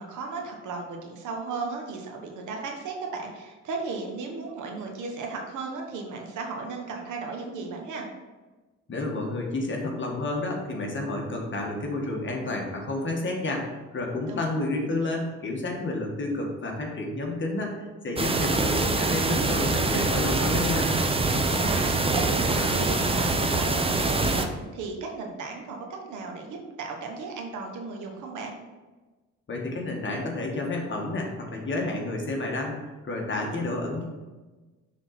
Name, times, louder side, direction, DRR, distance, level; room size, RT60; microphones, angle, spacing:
voice 1, 0.0-8.1 14.3-14.5 21.5-28.6, right 4 dB, 80° right, 1 dB, 1.4 m, -35 dB
voice 2, 8.9-21.0 29.5-34.0, left 2 dB, 40° left, 0 dB, 1.6 m, -30 dB
sound 1, 18.2-24.5, right 3 dB, 20° right, 0.7 m, -24 dB
6.2 x 3.9 x 5.8 m, 1.2 s
cardioid pair, 90°, 30 cm